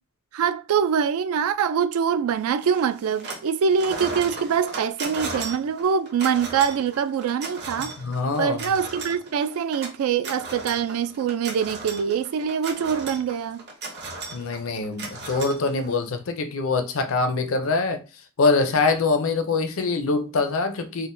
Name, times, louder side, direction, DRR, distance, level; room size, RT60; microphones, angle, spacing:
voice 1, 0.3-7.9 8.4-13.6, right 7 dB, 80° right, 0.3 m, -24 dB
sound 1, 2.6-3.5 3.8-16.2, right 3 dB, 50° right, 0.8 m, -36 dB
voice 2, 8.0-8.7 14.3-18.0 18.4-21.1, left 3 dB, 70° left, 0.5 m, -24 dB
3.6 x 2.1 x 2.6 m
head